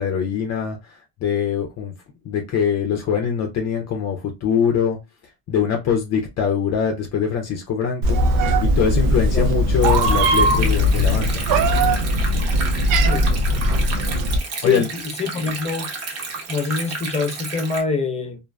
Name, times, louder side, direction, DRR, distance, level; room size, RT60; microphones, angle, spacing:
voice 1, 0.0-1.9 2.2-5.0 5.5-8.2 8.6-11.4 14.6-14.9, left 7 dB, 50° left, 0.5 m, -23 dB
Meow, 8.0-14.4, equal, 70° right, 0.6 m, -19 dB
Stream, 9.8-17.8, right 4 dB, 45° right, 1.0 m, -32 dB
voice 2, 14.6-15.9 16.5-18.4, left 5 dB, 20° left, 0.8 m, -25 dB
2.5 x 2.1 x 2.3 m
supercardioid pair, 95°, 35 cm